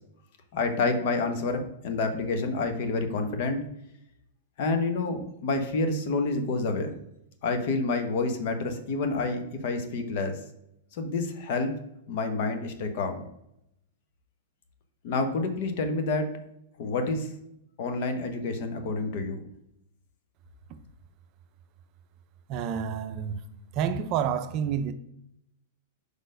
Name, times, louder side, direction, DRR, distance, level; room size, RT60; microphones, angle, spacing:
voice 1, 0.5-3.6 4.6-6.9 7.4-10.4 11.0-11.7 12.1-13.2 15.0-16.4 16.8-17.3 17.8-19.4, left 3 dB, 55° left, 1.1 m, -28 dB
voice 2, 22.5-23.4 23.8-24.9, right 8 dB, 40° right, 0.5 m, -28 dB
5.0 x 4.5 x 5.1 m
hypercardioid pair, 135°, 0 cm